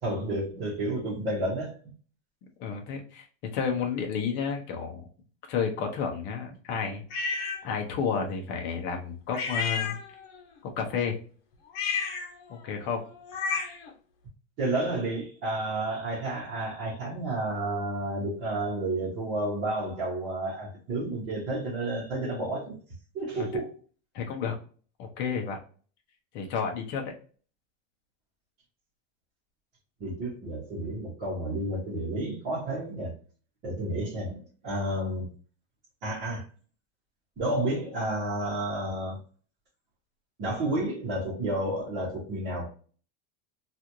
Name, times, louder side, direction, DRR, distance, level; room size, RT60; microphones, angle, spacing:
voice 1, 0.0-1.8 14.6-22.7 23.1-23.7 30.0-33.1 33.6-35.3 36.0-36.4 37.4-39.2 40.4-42.7, right 1 dB, 30° right, 1.0 m, -31 dB
voice 2, 2.6-3.3 3.5-5.0 5.5-10.0 10.6-11.2 12.5-13.0 23.3-23.5 24.1-24.5 25.0-25.6 26.3-27.1, left 6 dB, 35° left, 0.7 m, -31 dB
sound 1, 7.1-7.6 9.3-10.4 11.7-13.9, left 5 dB, 65° left, 0.9 m, -32 dB
3.1 x 2.5 x 2.7 m
supercardioid pair, 175°, 33 cm